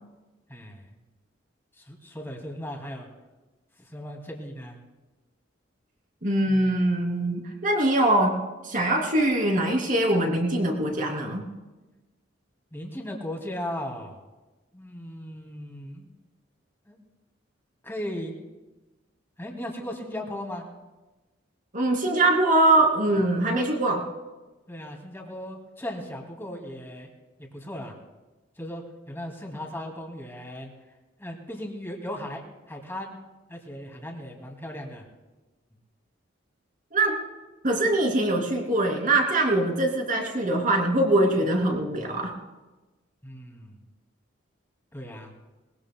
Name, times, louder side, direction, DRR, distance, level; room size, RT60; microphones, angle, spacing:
voice 1, 0.5-0.8 1.8-3.1 3.9-4.8 6.5-6.9 12.7-14.2 14.7-16.1 16.9-17.0 17.8-18.4 19.4-20.6 24.7-27.1 27.4-27.9 28.6-30.7 31.2-32.4 32.7-33.2 33.5-35.0 43.2-43.7 44.9-45.3, left 1 dB, 10° left, 1 dB, 2.5 m, -37 dB
voice 2, 6.2-8.4 8.6-11.4 21.7-24.1 36.9-37.2 37.6-42.3, right 1 dB, 45° right, 2 dB, 2.8 m, -23 dB
21.0 x 20.5 x 2.3 m, 1.1 s
head